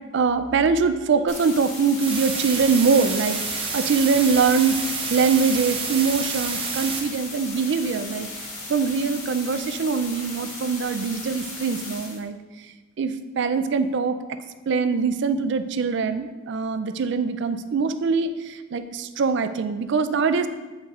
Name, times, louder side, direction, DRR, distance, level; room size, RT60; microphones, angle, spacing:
voice 1, 0.1-4.8 5.1-8.3 8.7-12.4 13.0-14.2 14.7-18.3 18.7-20.5, right 5 dB, 60° right, 10 dB, 0.4 m, -23 dB
sound 1, 1.3-12.2, left 2 dB, 75° left, 1.9 m, -37 dB
sound 2, 2.0-7.0, right 4 dB, 25° right, 0.8 m, -29 dB
8.2 x 5.2 x 2.4 m, 1.2 s
head